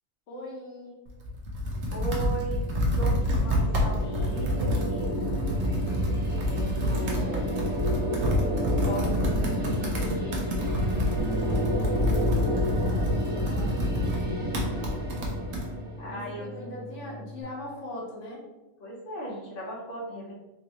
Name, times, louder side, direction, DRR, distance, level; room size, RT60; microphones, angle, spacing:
voice 1, 0.3-1.0 6.9-7.5 12.2-14.9 16.0-18.4, left 1 dB, 70° left, -3 dB, 1.2 m, -41 dB
Computer keyboard, 1.1-15.7, left 1 dB, 85° right, 1.2 m, -28 dB
sound 1, 1.7-16.8, equal, 10° right, 0.8 m, -32 dB
voice 2, 1.9-2.6 3.0-5.3 6.5-7.4 8.3-10.4 16.0-16.5 18.8-20.3, right 2 dB, 50° left, -3 dB, 1.0 m, -37 dB
Bass guitar, 11.2-17.4, equal, 55° right, 0.5 m, -36 dB
3.6 x 3.0 x 2.9 m, 1.1 s
omnidirectional pair, 1.3 m